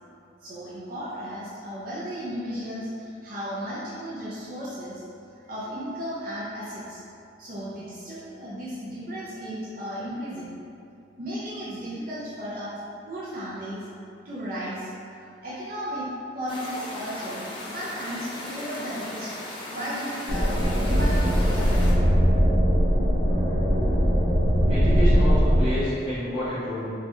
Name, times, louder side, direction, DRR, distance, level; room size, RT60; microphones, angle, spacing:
voice 1, 0.4-5.0 5.5-7.0 7.4-10.5 11.2-12.7 13.0-13.8 14.2-14.9 15.4-16.1 16.3-19.3 19.7-21.9, equal, 50° right, -9 dB, 0.5 m, -34 dB
sound 1, 16.5-21.9, left 1 dB, 25° left, 0.3 m, -37 dB
sound 2, 20.3-25.6, equal, 80° right, 0.7 m, -20 dB
voice 2, 24.7-26.9, left 1 dB, 5° right, -15 dB, 1.2 m, -28 dB
3.2 x 2.4 x 2.9 m, 2.5 s
head